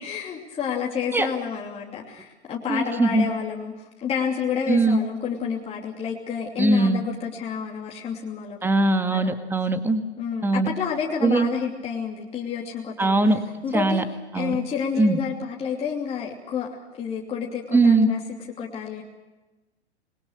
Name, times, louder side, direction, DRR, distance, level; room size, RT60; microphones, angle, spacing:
voice 1, 0.0-9.4 10.2-14.1 14.3-18.2 18.6-19.0, left 7 dB, 20° left, -2 dB, 2.9 m, -30 dB
voice 2, 2.7-3.3 4.7-5.0 6.6-7.0 8.6-10.0 10.4-10.7 11.2-11.5 13.0-13.4 13.7-14.0 14.3-14.6 15.0-15.2 17.7-18.1, right 2 dB, 5° right, 10 dB, 1.7 m, -20 dB
27.0 x 21.5 x 6.5 m, 1.1 s
figure-of-eight pair, 105°, 34 cm